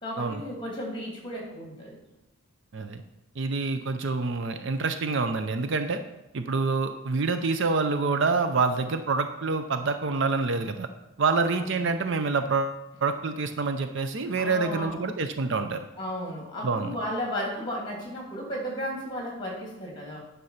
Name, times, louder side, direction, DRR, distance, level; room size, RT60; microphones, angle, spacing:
voice 1, 0.0-2.0 11.5-11.9 14.4-15.0 16.0-20.2, equal, 20° left, -1 dB, 2.6 m, -34 dB
voice 2, 3.4-6.0 6.3-10.9 11.2-15.9 16.6-16.9, right 4 dB, 55° right, 8 dB, 0.5 m, -27 dB
9.4 x 5.5 x 5.6 m, 0.96 s
head